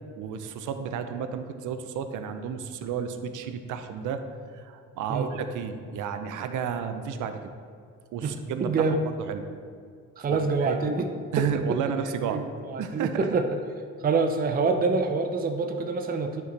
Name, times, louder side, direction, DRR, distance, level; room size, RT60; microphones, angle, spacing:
voice 1, 0.2-4.2 4.5-7.5 8.1-9.4 10.3-10.8 11.3-12.4 12.8-13.4, right 7 dB, 80° right, 8 dB, 0.6 m, -32 dB
voice 2, 8.6-9.0 10.2-11.1 11.4-11.5 12.3-13.5 14.0-16.4, right 4 dB, 30° right, 5 dB, 0.5 m, -26 dB
9.3 x 5.1 x 3.3 m, 2.2 s
cardioid pair, 90°, 30 cm